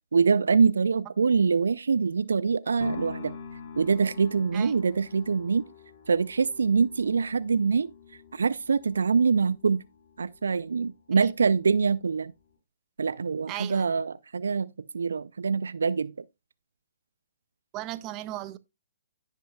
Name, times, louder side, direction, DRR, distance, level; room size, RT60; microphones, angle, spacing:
voice 1, 0.1-3.3 3.8-5.6 6.1-7.9 8.3-9.8 10.2-12.3 13.0-16.1, right 5 dB, 70° right, 0.4 m, -24 dB
sound 1, 2.8-10.9 11.4-11.5, left 5 dB, 50° left, 3.1 m, -45 dB
voice 2, 13.5-13.9 17.7-18.6, right 14 dB, 25° right, 0.6 m, -36 dB
16.0 x 5.5 x 2.2 m
figure-of-eight pair, 125°, 0 cm